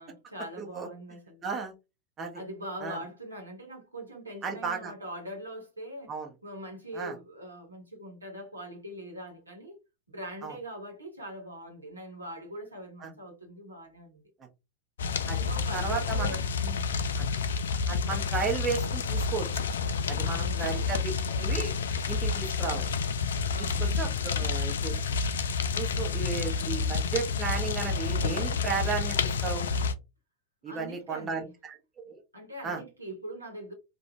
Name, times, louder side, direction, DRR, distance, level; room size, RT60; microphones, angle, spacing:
voice 1, 0.0-1.5 2.3-6.2 6.4-9.8 10.1-14.2 15.5-16.9 20.2-21.1 23.5-24.1 30.7-31.5 32.3-33.7, right 1 dB, 80° right, 0.9 m, -42 dB
voice 2, 0.6-0.9 1.4-1.7 2.2-2.4 2.8-3.0 4.4-4.9 6.1-6.3 6.9-7.1 10.4-10.6 13.0-13.1 15.3-15.5 15.7-16.4 17.2-17.3 17.9-19.6 20.1-21.7 22.1-22.8 23.6-24.9 25.7-29.7 30.6-31.8 32.0-32.2 32.6-32.8, right 5 dB, 25° right, 1.0 m, -34 dB
sound 1, 15.0-29.9, left 5 dB, 65° left, 0.3 m, -29 dB
2.4 x 2.3 x 2.7 m
figure-of-eight pair, 90°, 0 cm